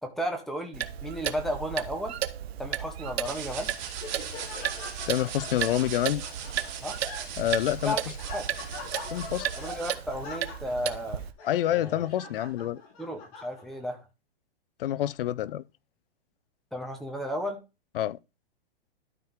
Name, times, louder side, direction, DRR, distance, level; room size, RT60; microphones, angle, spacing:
voice 1, 0.0-2.2 2.6-3.7 6.8-7.0 7.8-8.0 8.3-8.5 9.6-11.2 11.7-12.0 13.0-14.0 16.7-17.6, equal, ahead, 0.9 m, -33 dB
Clock, 0.7-11.3, right 10 dB, 75° right, 0.9 m, -35 dB
sound 1, 3.2-9.9, right 8 dB, 45° right, 2.7 m, -40 dB
Laughter, 3.4-13.9, left 3 dB, 35° left, 3.3 m, -44 dB
voice 2, 5.1-6.2 7.4-8.0 9.1-9.5 11.4-12.8 14.8-15.6 18.0-18.2, left 12 dB, 60° left, 0.6 m, -27 dB
12.5 x 4.5 x 3.7 m
hypercardioid pair, 160°, 32 cm